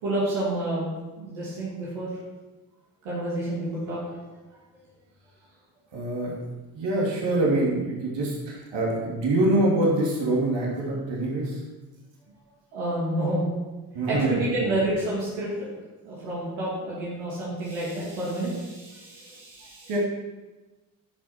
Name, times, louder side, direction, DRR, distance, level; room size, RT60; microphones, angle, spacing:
voice 1, 0.0-2.1 3.0-4.2 12.7-13.4 14.1-15.8 16.0-19.9, right 1 dB, 85° right, -7 dB, 2.7 m, -29 dB
voice 2, 5.9-6.4 6.7-11.6 13.9-14.7 19.9-20.0, right 1 dB, 70° right, -3 dB, 2.9 m, -25 dB
10.5 x 5.7 x 6.0 m, 1.2 s
supercardioid pair, 50°, 45 cm